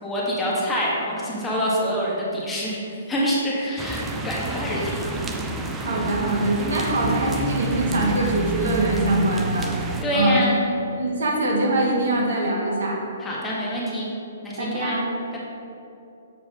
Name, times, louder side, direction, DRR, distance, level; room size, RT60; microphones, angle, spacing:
voice 1, 0.0-5.2 10.0-10.6 13.2-14.1 14.4-15.0, equal, 10° left, -6 dB, 1.6 m, -26 dB
sound 1, 3.8-10.0, right 2 dB, 10° right, 0.6 m, -29 dB
voice 2, 5.8-10.4 11.0-13.0 14.6-15.1, right 1 dB, 70° right, -2 dB, 1.7 m, -23 dB
7.6 x 4.7 x 5.0 m, 2.8 s
hypercardioid pair, 135°, 0 cm